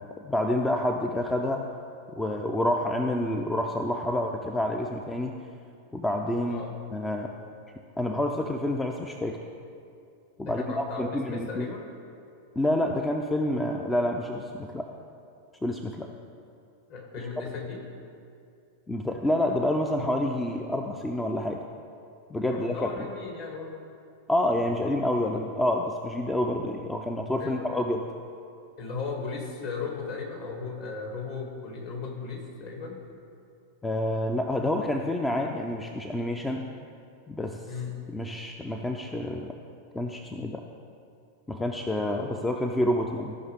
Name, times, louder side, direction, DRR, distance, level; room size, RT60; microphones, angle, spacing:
voice 1, 0.2-1.7 2.1-5.4 5.9-6.6 6.9-7.3 8.0-9.4 10.4-11.7 12.6-14.9 15.6-16.1 18.9-21.6 22.3-23.1 24.3-28.0 33.8-36.7 37.3-37.6 38.1-39.5 39.9-40.6 41.5-43.3, left 1 dB, 10° left, 3 dB, 0.5 m, -28 dB
voice 2, 10.5-11.8 16.9-17.8 22.5-23.8 27.4-27.6 28.8-33.0 37.6-37.9, left 4 dB, 45° left, -1 dB, 2.3 m, -36 dB
16.0 x 5.6 x 3.5 m, 2.5 s
figure-of-eight pair, 90°, 0 cm